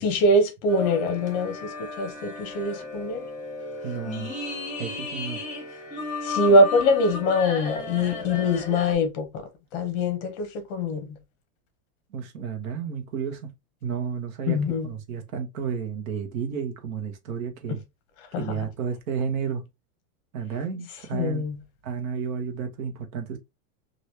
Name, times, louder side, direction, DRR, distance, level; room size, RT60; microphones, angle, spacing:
voice 1, 0.0-1.7 2.0-3.2 6.2-9.3 9.7-11.2 14.5-14.9 18.3-18.4 21.1-21.6, left 1 dB, 40° left, 0.9 m, -23 dB
sound 1, 0.7-8.9, left 3 dB, 20° left, 1.2 m, -34 dB
voice 2, 3.8-4.3 4.8-5.4 12.1-13.5 13.8-17.8 18.4-19.6 20.3-21.4 21.8-23.4, right 6 dB, 70° right, 1.1 m, -32 dB
3.3 x 2.6 x 2.8 m
supercardioid pair, 160°, 42 cm